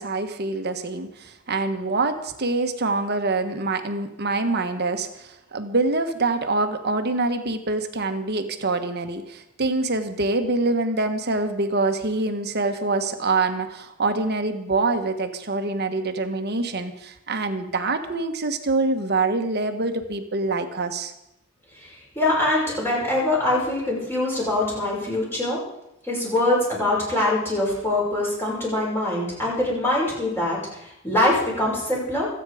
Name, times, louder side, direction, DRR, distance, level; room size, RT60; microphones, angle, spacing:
voice 1, 0.0-21.1, right 3 dB, 50° right, 7 dB, 1.4 m, -25 dB
voice 2, 21.7-25.6 26.0-32.3, left 1 dB, 10° left, -4 dB, 6.0 m, -23 dB
26.0 x 9.2 x 5.0 m, 0.86 s
head